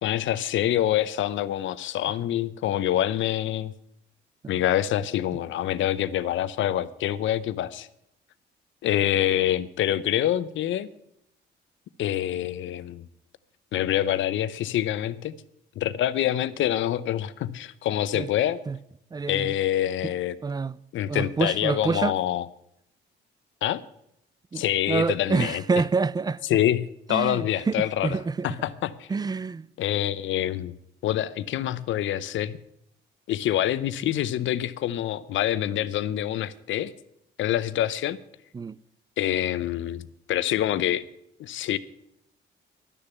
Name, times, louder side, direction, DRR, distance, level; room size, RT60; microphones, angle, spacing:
voice 1, 0.0-3.7 4.5-7.9 8.8-10.9 12.0-13.1 13.7-15.3 15.8-18.6 19.3-20.4 20.9-22.5 23.6-23.8 24.5-25.6 26.5-28.2 28.4-29.1 29.8-30.8 31.0-32.6 33.3-36.9 37.4-38.2 39.2-41.0 41.4-41.8, left 12 dB, 75° left, 0.7 m, -26 dB
voice 2, 19.1-19.5 20.0-20.1 20.4-20.8 21.1-22.1 24.5-26.4 27.1-28.5 29.1-29.7 38.5-38.8, right 4 dB, 20° right, 0.4 m, -27 dB
12.0 x 6.7 x 9.2 m
cardioid pair, 90°, 20 cm